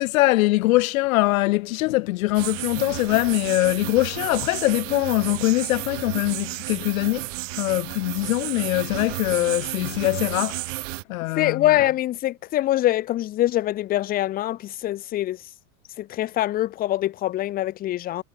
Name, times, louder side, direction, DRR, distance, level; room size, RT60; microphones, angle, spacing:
voice 1, 0.0-7.3 7.6-10.6 11.1-11.7, left 19 dB, 80° left, 0.6 m, -22 dB
sound 1, 2.3-11.0, right 22 dB, 65° right, 0.6 m, -32 dB
voice 2, 11.4-15.4 16.0-18.2, left 14 dB, 25° left, 0.5 m, -24 dB
supercardioid pair, 130°, 41 cm